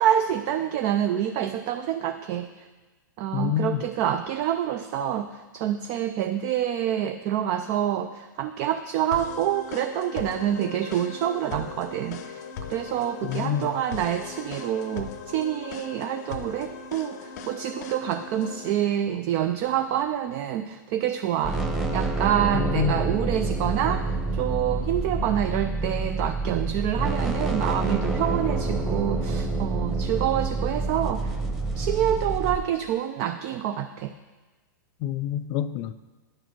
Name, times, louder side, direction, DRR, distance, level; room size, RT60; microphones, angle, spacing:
voice 1, 0.0-2.7 3.2-12.4 12.7-31.4 31.7-34.1, right 10 dB, 40° right, 0.5 m, -27 dB
voice 2, 3.3-3.8 13.2-13.7 22.5-22.9 35.0-35.9, left 10 dB, 40° left, 0.4 m, -27 dB
sound 1, 9.1-18.7, left 6 dB, 55° left, 0.7 m, -39 dB
sound 2, 21.4-32.6, right 3 dB, 5° right, 0.9 m, -27 dB
9.9 x 4.8 x 6.0 m
hypercardioid pair, 120°, 11 cm